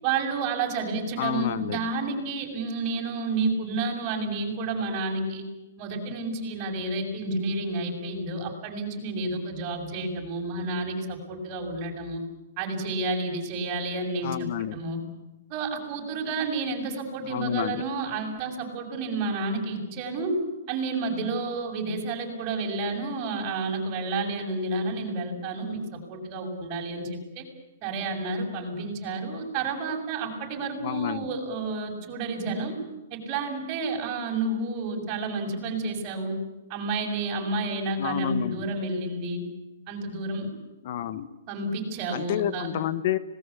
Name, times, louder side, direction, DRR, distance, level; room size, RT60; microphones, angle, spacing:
voice 1, 0.0-5.5 5.8-12.2 12.6-15.0 15.5-20.3 20.7-27.4 27.8-32.8 33.1-36.4 36.7-39.4 39.9-40.5 41.5-42.7, right 3 dB, 30° right, 1 dB, 7.3 m, -30 dB
voice 2, 1.1-1.8 14.2-14.8 17.2-17.8 30.8-31.3 38.0-38.7 40.8-41.3 42.1-43.2, left 11 dB, 50° left, 14 dB, 1.3 m, -29 dB
26.0 x 19.5 x 8.5 m, 1.0 s
hypercardioid pair, 150°, 0 cm